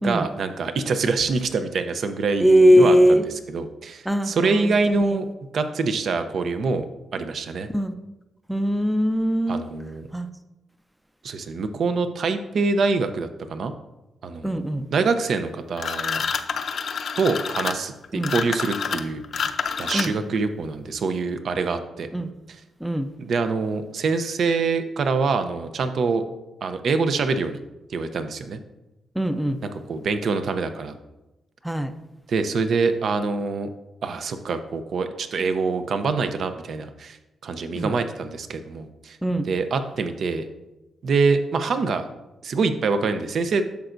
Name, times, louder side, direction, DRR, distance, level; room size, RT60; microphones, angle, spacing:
voice 1, 0.0-3.2 3.5-5.3 5.5-6.8 7.1-7.7 9.5-10.1 11.2-13.7 14.2-14.5 14.9-16.2 17.2-19.4 19.8-22.1 23.2-26.2 26.6-27.6 27.9-28.6 29.9-31.0 32.3-33.7 34.0-37.2 37.4-39.2 39.5-40.4 41.0-42.0 42.4-43.6, right 4 dB, 55° right, 9 dB, 0.6 m, -25 dB
voice 2, 2.4-3.3 4.1-5.2 7.7-7.9 8.5-9.7 10.1-10.3 14.4-14.9 18.1-18.3 19.9-20.1 22.1-22.3 22.8-23.1 29.2-29.6 31.6-31.9 37.8-37.9 39.2-39.5, equal, ahead, 9 dB, 0.5 m, -20 dB
sound 1, 15.8-20.4, left 6 dB, 55° left, 0.5 m, -28 dB
10.5 x 6.9 x 2.6 m, 0.98 s
cardioid pair, 130°, 0 cm